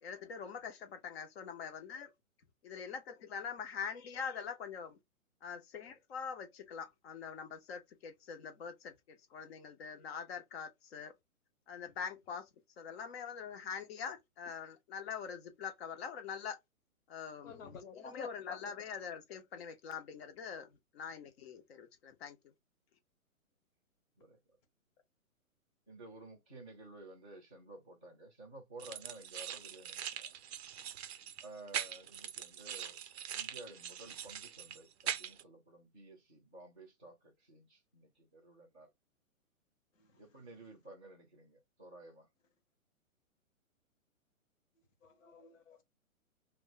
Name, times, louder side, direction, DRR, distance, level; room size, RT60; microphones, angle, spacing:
voice 1, 0.0-2.1 2.6-5.0 5.4-11.1 11.7-12.5 12.8-16.6 17.1-17.5 18.1-22.5, left 6 dB, 45° left, 0.9 m, -44 dB
voice 2, 17.4-18.7 31.2-31.3 39.9-40.7 44.7-45.8, left 6 dB, 60° left, 1.3 m, -51 dB
voice 3, 25.9-30.3 30.9-33.0 33.3-38.9 40.2-42.3, right 2 dB, 5° left, 0.4 m, -54 dB
sound 1, 28.8-35.4, right 9 dB, 50° right, 0.5 m, -42 dB
2.4 x 2.3 x 3.8 m
hypercardioid pair, 135°, 43 cm